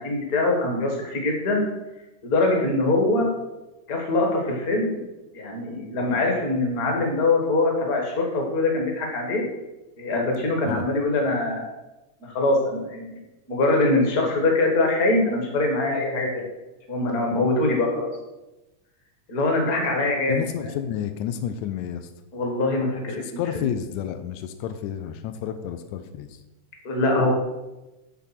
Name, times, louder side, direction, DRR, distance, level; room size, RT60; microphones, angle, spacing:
voice 1, 0.0-1.6 2.2-3.3 3.9-5.0 5.3-9.4 10.0-11.7 12.3-13.2 13.5-16.4 16.9-18.1 19.3-20.7 22.3-23.2 23.5-23.7 26.8-27.3, left 2 dB, 45° left, 1 dB, 1.2 m, -23 dB
voice 2, 20.3-22.1 23.2-26.4, left 9 dB, 90° left, 8 dB, 1.6 m, -30 dB
10.5 x 3.6 x 5.8 m, 1.0 s
omnidirectional pair, 3.9 m